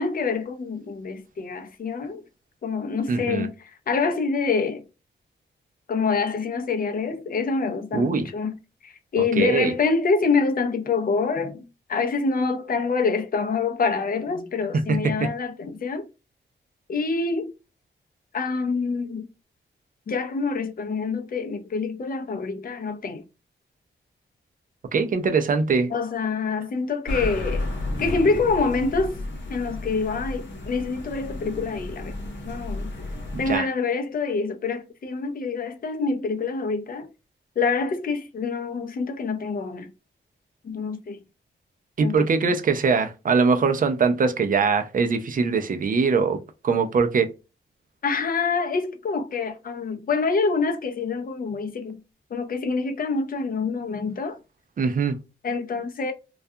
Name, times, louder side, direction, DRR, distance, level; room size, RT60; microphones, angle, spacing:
voice 1, 0.0-2.2 2.6-3.5 3.9-4.8 5.9-8.6 8.8-11.6 11.9-16.1 16.9-17.5 18.3-19.2 20.1-23.2 25.9-27.7 28.0-29.2 29.5-32.1 32.5-32.9 33.4-37.1 37.6-39.9 40.6-41.2 42.0-42.6 48.0-52.0 52.3-54.4 55.4-56.1, left 4 dB, 45° left, 0.5 m, -26 dB
voice 2, 3.1-3.5 7.9-8.3 9.2-9.7 14.7-15.3 24.9-25.9 33.3-33.7 42.0-46.4 46.6-47.3 54.8-55.2, right 5 dB, 45° right, 0.4 m, -22 dB
sound 1, 27.1-33.6, left 2 dB, 65° left, 0.9 m, -32 dB
2.3 x 2.2 x 2.6 m
wide cardioid pair, 110°, 20 cm